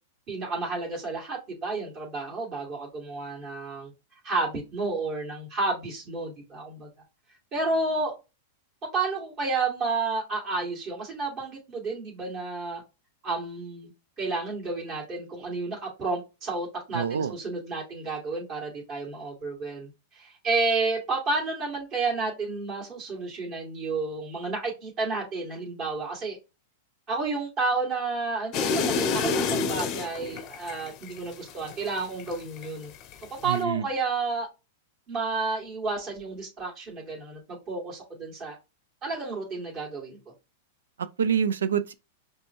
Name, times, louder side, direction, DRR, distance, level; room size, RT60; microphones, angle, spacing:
voice 1, 0.3-3.9 4.2-6.9 7.5-8.2 8.9-12.8 13.2-13.9 14.2-26.4 27.1-32.9 33.4-34.5 35.1-38.6 39.0-40.2, right 3 dB, 35° right, 2.2 m, -31 dB
voice 2, 16.9-17.3 33.4-33.9 41.0-41.9, right 7 dB, 85° right, 0.4 m, -26 dB
sound 1, 28.5-32.7 33.0-33.6, left 5 dB, 40° left, 0.6 m, -28 dB
5.2 x 2.3 x 3.0 m
hypercardioid pair, 115°, 0 cm